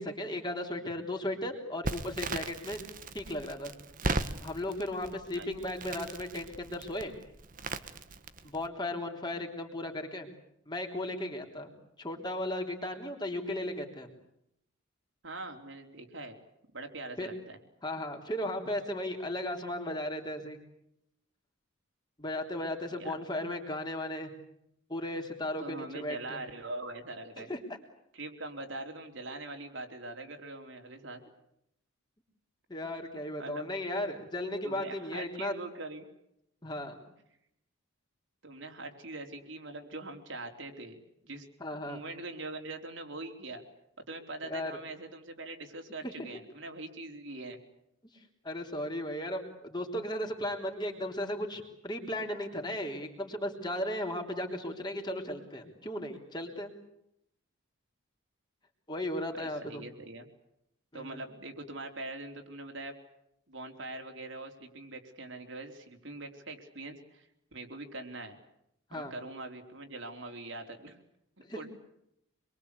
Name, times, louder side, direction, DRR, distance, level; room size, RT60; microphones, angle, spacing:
voice 1, 0.0-2.8 3.1-3.7 4.4-7.1 8.4-10.3 10.7-11.7 12.0-14.1 17.2-17.3 17.8-20.6 22.2-24.3 24.9-26.4 27.4-27.6 32.7-35.5 36.6-37.0 41.6-42.0 44.4-44.7 46.0-46.1 48.4-56.7 58.9-59.8 60.9-61.2 68.9-69.1 71.4-71.6, left 1 dB, 20° left, 3 dB, 3.5 m, -36 dB
Crackle, 1.8-8.7, right 3 dB, 40° right, 1.4 m, -38 dB
voice 2, 15.2-16.4 16.7-17.6 23.0-23.3 25.6-27.5 28.1-31.2 32.7-32.8 33.4-33.7 34.6-36.1 38.4-41.5 41.9-43.6 44.0-47.6 59.3-60.3 60.9-62.9 63.5-68.4 68.9-71.0 71.6-71.7, right 2 dB, 60° right, 4 dB, 3.8 m, -43 dB
26.5 x 23.5 x 8.3 m, 0.78 s
head